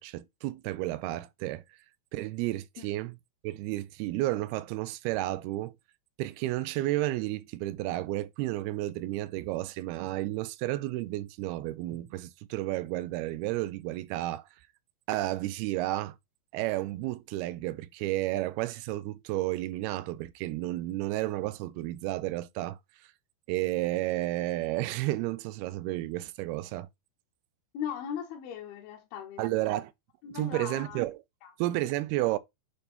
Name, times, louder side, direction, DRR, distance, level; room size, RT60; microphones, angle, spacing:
voice 1, 0.0-1.6 2.1-3.1 3.4-5.7 6.2-14.5 15.1-16.2 16.5-22.8 23.5-26.9 29.4-29.9 30.3-31.1 31.6-32.4, right 17 dB, 80° right, 2.5 m, -32 dB
voice 2, 27.7-29.8 30.2-31.1 31.4-31.5, left 9 dB, 75° left, 2.6 m, -39 dB
8.5 x 3.3 x 4.3 m
omnidirectional pair, 4.6 m